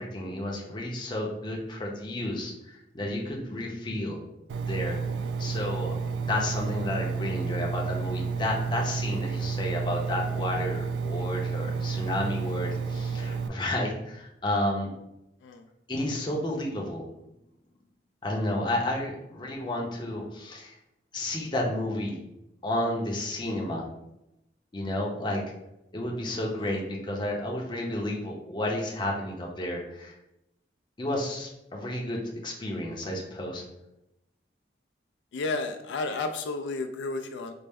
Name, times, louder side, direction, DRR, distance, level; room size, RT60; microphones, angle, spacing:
voice 1, 0.0-4.2 4.6-5.0 5.4-14.9 15.9-17.1 18.2-20.8 21.1-22.2 22.6-23.9 24.7-25.4 25.9-30.2 31.0-33.6, left 1 dB, 25° left, -1 dB, 0.6 m, -31 dB
Engine, 4.5-13.5, right 5 dB, 85° right, 0.3 m, -31 dB
voice 2, 35.3-37.5, left 3 dB, 80° left, 6 dB, 0.3 m, -32 dB
4.1 x 2.0 x 3.4 m, 0.86 s
head